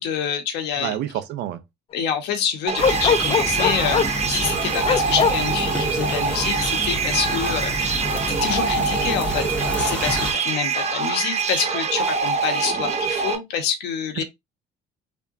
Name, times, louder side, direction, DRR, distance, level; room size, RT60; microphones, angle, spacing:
voice 1, 0.0-1.0 1.9-14.2, left 7 dB, 80° left, 1.2 m, -27 dB
voice 2, 0.8-1.6 14.2-14.3, right 12 dB, 90° right, 0.7 m, -28 dB
sound 1, 2.7-13.3, right 5 dB, 40° right, 0.8 m, -24 dB
Bark, 2.8-4.2 4.8-5.4, left 6 dB, 35° left, 0.5 m, -20 dB
sound 2, 2.8-10.3, equal, 10° left, 1.9 m, -29 dB
3.5 x 3.5 x 2.7 m
cardioid pair, 110°, 17 cm